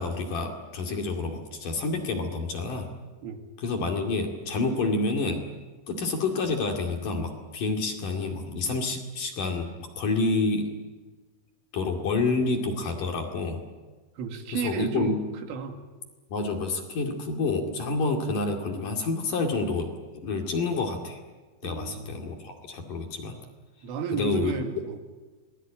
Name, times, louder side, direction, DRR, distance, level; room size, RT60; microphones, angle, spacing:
voice 1, 0.0-2.9 3.6-5.4 5.9-9.7 10.0-10.7 11.7-13.6 14.5-15.2 16.3-21.2 21.6-23.4 24.1-24.5, left 3 dB, 50° left, 2 dB, 3.4 m, -28 dB
voice 2, 14.2-15.8 21.6-22.1 23.8-25.0, right 6 dB, 85° right, 5 dB, 4.7 m, -33 dB
26.5 x 20.0 x 9.0 m, 1.3 s
omnidirectional pair, 5.6 m